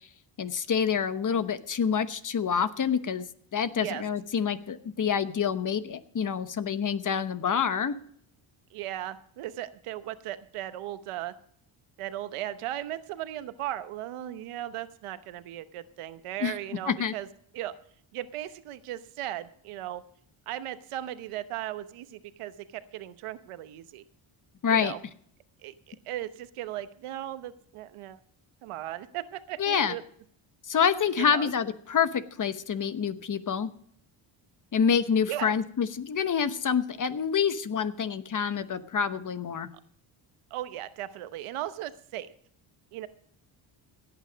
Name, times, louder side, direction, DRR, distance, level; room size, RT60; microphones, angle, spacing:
voice 1, 0.4-3.2 3.5-8.0 16.4-16.5 16.8-17.1 24.6-24.9 29.6-29.9 30.7-33.7 34.7-39.7, left 7 dB, 40° left, 12 dB, 1.0 m, -27 dB
voice 2, 8.7-11.3 12.0-17.3 17.5-17.7 18.1-20.0 20.5-24.0 24.7-25.0 25.6-28.2 28.6-30.0 31.2-31.5 35.3-35.6 40.5-42.3 42.9-43.1, right 13 dB, 90° right, 12 dB, 1.0 m, -37 dB
17.0 x 9.1 x 5.1 m, 0.62 s
cardioid pair, 100°, 50 cm